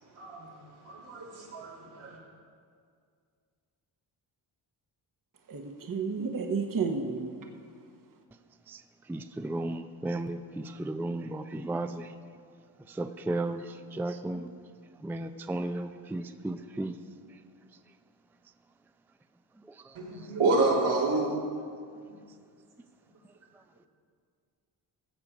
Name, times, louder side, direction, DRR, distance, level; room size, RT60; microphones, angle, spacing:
voice 1, 0.2-0.5 0.8-1.7 2.0-2.1 19.9-21.3, right 3 dB, 85° right, -5 dB, 3.1 m, -28 dB
voice 2, 5.5-7.3, right 5 dB, 40° right, 4 dB, 1.1 m, -31 dB
voice 3, 8.7-12.2 12.8-14.5 15.0-17.0 17.3-17.4 19.7-20.3, right 2 dB, 5° right, 9 dB, 0.4 m, -35 dB
15.5 x 6.9 x 4.9 m, 2.2 s
cardioid pair, 65°, 49 cm